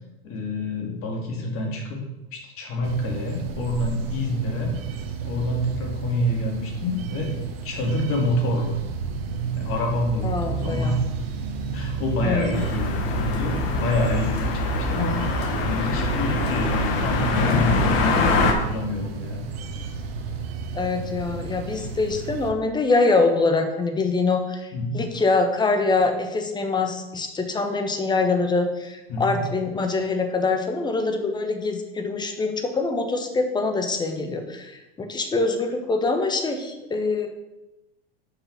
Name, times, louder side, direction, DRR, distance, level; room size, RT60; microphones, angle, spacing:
voice 1, 0.2-2.0 2.3-7.3 7.6-8.8 9.5-11.1 11.7-19.4 24.7-25.0 29.1-29.4, left 1 dB, 45° left, 2 dB, 2.1 m, -27 dB
sound 1, 2.8-22.5, right 5 dB, 75° right, 1.1 m, -31 dB
voice 2, 10.2-11.0 12.2-12.6 20.7-37.3, left 3 dB, 15° left, 5 dB, 1.1 m, -24 dB
sound 2, 12.5-18.5, left 3 dB, 70° left, 1.4 m, -24 dB
5.9 x 5.8 x 5.8 m, 1.0 s
hypercardioid pair, 110°, 31 cm